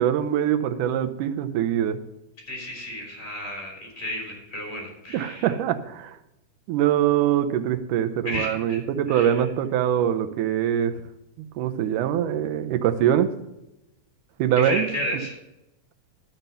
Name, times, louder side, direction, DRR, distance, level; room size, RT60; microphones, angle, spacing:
voice 1, 0.0-2.0 5.1-6.2 6.7-10.9 11.6-13.3 14.4-14.9, right 10 dB, 85° right, 9 dB, 2.3 m, -23 dB
voice 2, 2.5-5.5 8.2-8.8 9.1-9.4 14.5-15.4, equal, 20° left, 0 dB, 3.6 m, -32 dB
12.0 x 5.9 x 6.8 m, 0.92 s
omnidirectional pair, 3.5 m